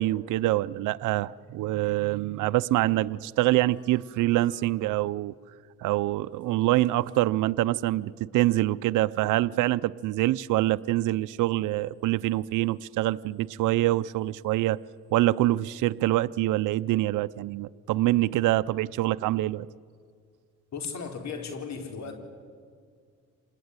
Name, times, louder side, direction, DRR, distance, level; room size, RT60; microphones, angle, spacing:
voice 1, 0.0-5.3 5.8-14.8 15.1-19.7, right 16 dB, 85° right, 0.6 m, -25 dB
sound 1, 3.7-4.9 6.3-7.5, left 2 dB, 15° left, 6.5 m, -59 dB
voice 2, 20.7-22.1, left 5 dB, 65° left, 4.0 m, -35 dB
27.0 x 19.5 x 9.7 m
cardioid pair, 90°, 30 cm